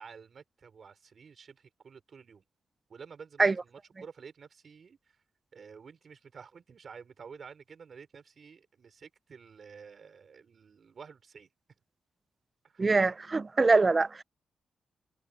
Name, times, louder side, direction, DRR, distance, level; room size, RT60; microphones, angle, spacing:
voice 1, 0.0-2.4 2.9-5.2 5.5-11.5 12.6-13.0, right 6 dB, 40° right, 5.1 m, -51 dB
voice 2, 12.8-14.2, right 3 dB, 25° right, 0.3 m, -24 dB
open air
wide cardioid pair, 165°, 0 cm